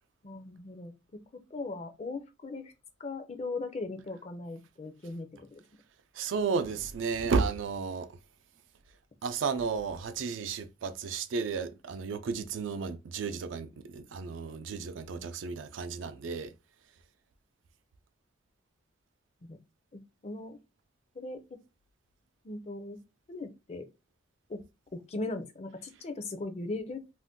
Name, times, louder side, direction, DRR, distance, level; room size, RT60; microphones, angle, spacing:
voice 1, 0.2-2.7 3.0-5.6 15.2-15.3 19.4-19.6 19.9-20.6 21.1-21.6 22.4-23.0 23.3-23.9 24.5-24.6 24.9-27.0, left 2 dB, 35° left, 0.4 m, -39 dB
voice 2, 6.1-8.1 9.2-16.5, right 5 dB, 85° right, 0.4 m, -33 dB
2.5 x 2.1 x 3.5 m
head